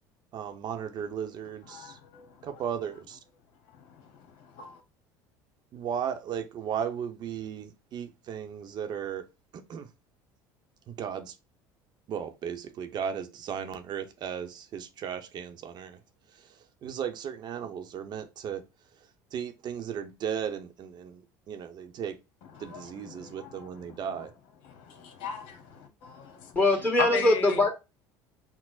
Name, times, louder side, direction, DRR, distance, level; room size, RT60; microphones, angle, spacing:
voice 1, 0.3-2.0 2.4-3.2 5.7-9.3 9.5-9.9 10.9-11.3 12.1-16.0 16.8-18.6 19.3-22.2 22.6-24.3, right 8 dB, 50° right, 0.7 m, -36 dB
voice 2, 1.7-2.3 4.0-4.1 4.4-4.8 22.5-24.3 24.7-26.6 27.0-27.6, left 5 dB, 70° left, 0.9 m, -38 dB
voice 3, 26.5-27.7, left 2 dB, 15° left, 1.6 m, -22 dB
6.0 x 2.0 x 2.3 m
supercardioid pair, 90°, 9 cm